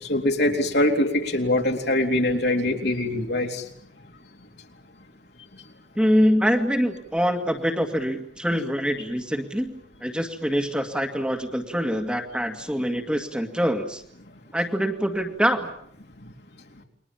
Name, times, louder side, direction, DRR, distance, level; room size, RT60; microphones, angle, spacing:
voice 1, 0.1-3.6, left 1 dB, 65° left, 2 dB, 3.8 m, -23 dB
voice 2, 6.0-14.0 14.5-15.7, equal, 5° right, 4 dB, 2.1 m, -24 dB
30.0 x 22.5 x 7.4 m, 0.68 s
head